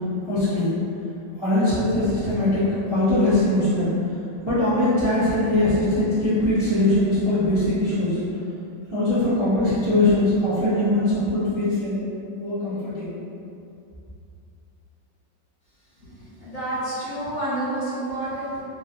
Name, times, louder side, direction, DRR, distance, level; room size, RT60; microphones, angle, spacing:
voice 1, 0.3-0.7 1.4-3.9 4.4-8.2 8.9-12.0 12.4-13.1, left 1 dB, 45° right, -15 dB, 0.3 m, -21 dB
voice 2, 16.4-18.6, right 1 dB, 55° left, -11 dB, 1.2 m, -29 dB
3.0 x 2.6 x 2.5 m, 2.6 s
omnidirectional pair, 2.0 m